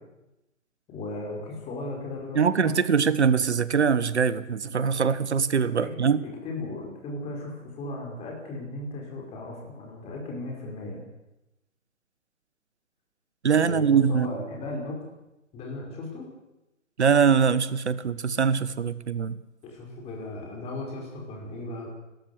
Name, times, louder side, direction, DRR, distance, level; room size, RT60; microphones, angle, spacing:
voice 1, 0.9-2.7 5.8-6.1 6.4-11.0 13.6-15.1 15.5-16.3 19.6-21.9, left 2 dB, 15° left, 0 dB, 5.3 m, -36 dB
voice 2, 2.3-6.2 13.4-14.3 17.0-19.4, right 6 dB, 55° right, 16 dB, 1.4 m, -23 dB
29.5 x 13.5 x 8.1 m, 0.95 s
figure-of-eight pair, 135°, 40 cm